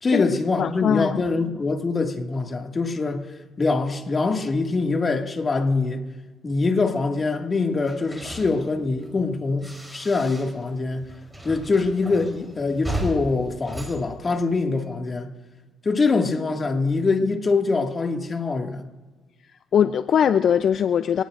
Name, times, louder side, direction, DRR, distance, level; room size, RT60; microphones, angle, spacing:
voice 1, 0.0-3.3 3.6-6.0 6.4-11.1 11.4-15.3 15.8-18.8, left 3 dB, 35° left, 2.0 m, -24 dB
voice 2, 0.6-1.2 19.7-21.2, left 8 dB, 60° left, 0.5 m, -21 dB
sound 1, 7.8-10.7 11.0-14.9, right 1 dB, 10° right, 3.7 m, -36 dB
27.0 x 18.5 x 2.6 m
cardioid pair, 90°, 0 cm